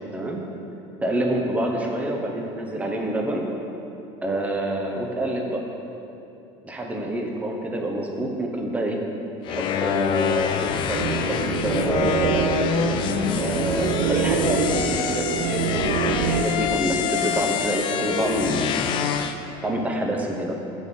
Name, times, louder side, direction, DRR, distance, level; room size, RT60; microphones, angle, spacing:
voice 1, 1.0-3.4 4.2-5.7 6.6-9.0 9.5-12.6 13.4-18.8 19.6-20.6, right 1 dB, 10° right, 1 dB, 0.9 m, -27 dB
sound 1, 9.4-19.3, left 8 dB, 40° left, 0.5 m, -26 dB
sound 2, 10.9-16.4, right 8 dB, 75° right, 0.5 m, -26 dB
8.2 x 6.2 x 5.4 m, 2.8 s
cardioid pair, 155°, 12 cm